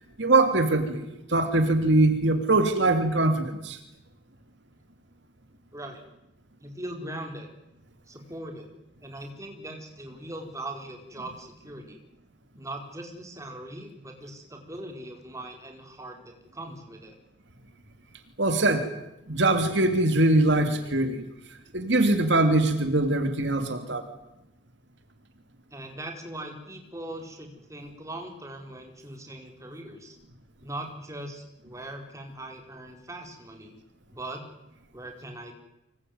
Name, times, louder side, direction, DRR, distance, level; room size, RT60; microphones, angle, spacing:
voice 1, 0.2-3.8 18.4-18.9 19.3-21.2 21.7-24.1, right 2 dB, 65° right, 7 dB, 2.8 m, -22 dB
voice 2, 6.6-7.5 8.1-8.7 9.0-12.0 12.6-17.2 25.7-30.2 30.6-33.8 34.1-34.4 34.9-35.5, right 1 dB, 15° right, 3 dB, 4.6 m, -40 dB
25.5 x 21.0 x 9.5 m, 0.88 s
head